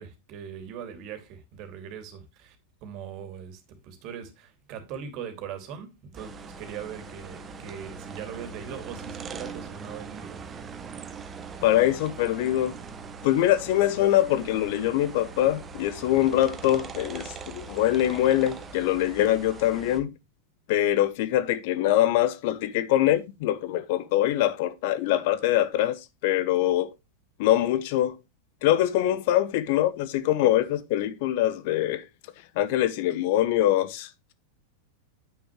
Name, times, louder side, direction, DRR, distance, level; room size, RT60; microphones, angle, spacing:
voice 1, 0.0-2.6 2.8-10.5, right 8 dB, 40° right, 2.7 m, -40 dB
sound 1, 6.1-20.0, right 5 dB, 20° right, 1.3 m, -41 dB
voice 2, 11.6-12.8 13.2-20.1 20.7-26.9 27.4-28.2 28.6-32.0 32.6-34.1, left 13 dB, 50° left, 0.9 m, -23 dB
9.8 x 8.9 x 3.1 m
figure-of-eight pair, 90°, 0 cm